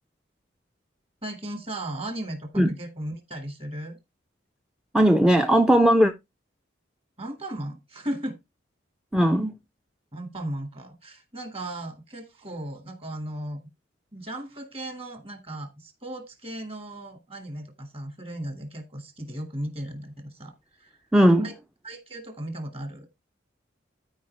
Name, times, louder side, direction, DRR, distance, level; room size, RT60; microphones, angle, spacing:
voice 1, 1.2-4.0 7.2-8.4 10.1-13.6 14.1-20.5 20.8-20.9 21.4-21.5 21.8-23.1, right 1 dB, 30° right, 2.1 m, -36 dB
voice 2, 4.9-6.1 9.1-9.5 21.1-21.5, equal, 5° right, 0.5 m, -18 dB
13.0 x 5.0 x 3.3 m
head